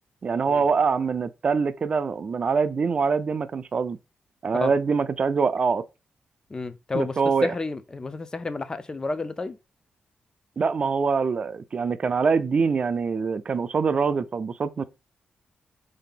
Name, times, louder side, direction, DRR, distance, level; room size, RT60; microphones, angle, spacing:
voice 1, 0.2-4.0 4.4-5.8 6.9-7.5 10.6-14.8, right 5 dB, 40° right, 0.4 m, -24 dB
voice 2, 6.5-9.6, left 3 dB, 25° left, 0.5 m, -31 dB
4.6 x 2.7 x 3.8 m
cardioid pair, 115°, 3 cm